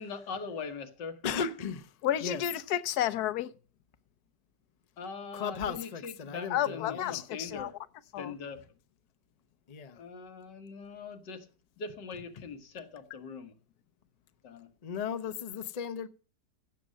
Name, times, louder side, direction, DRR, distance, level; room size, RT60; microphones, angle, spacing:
voice 1, 0.0-1.2 5.0-7.8 8.2-8.6 9.9-11.5 11.8-13.5 14.4-14.7, left 5 dB, 85° left, 2.0 m, -41 dB
voice 2, 1.2-1.9 2.2-2.4 5.3-7.2 9.7-10.0 14.8-16.1, left 6 dB, 40° left, 0.5 m, -36 dB
voice 3, 2.0-3.5 6.5-7.7 8.1-8.3, left 11 dB, 70° left, 1.2 m, -31 dB
16.5 x 6.8 x 6.3 m
omnidirectional pair, 1.8 m